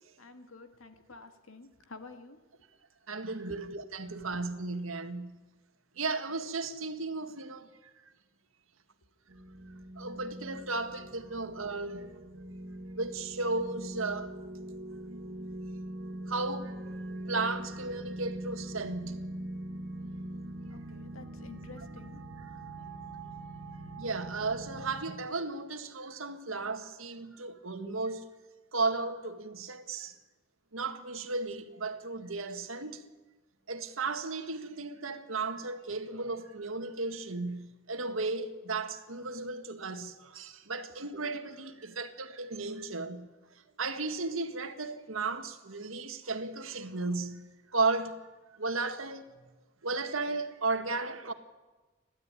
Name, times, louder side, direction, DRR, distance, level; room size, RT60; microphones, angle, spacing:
voice 1, 0.2-2.6 20.7-22.2, left 3 dB, 90° left, 2.2 m, -50 dB
voice 2, 3.1-5.4 6.0-7.7 10.0-12.2 13.0-14.4 16.3-16.8 17.3-19.3 24.0-28.3 28.7-30.2 30.7-33.0 33.7-43.3 43.8-48.3 48.5-49.3 49.8-51.3, right 3 dB, 85° right, 1.8 m, -35 dB
sound 1, 9.3-25.0, right 1 dB, 60° right, 2.6 m, -42 dB
29.5 x 12.5 x 9.8 m
head